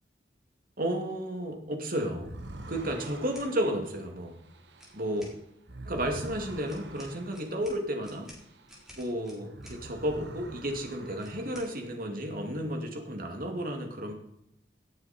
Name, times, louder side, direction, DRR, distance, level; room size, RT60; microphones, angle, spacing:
voice 1, 0.8-2.4 2.7-4.4 4.9-5.3 5.8-8.3 9.0-14.1, equal, 50° right, 3 dB, 2.4 m, -32 dB
sound 1, 2.2-9.1 9.4-12.1, right 2 dB, 70° right, 1.4 m, -46 dB
sound 2, 3.0-3.5 4.7-5.4 6.7-9.8 11.2-11.7, equal, 5° right, 4.3 m, -52 dB
17.5 x 8.8 x 4.4 m, 0.77 s
head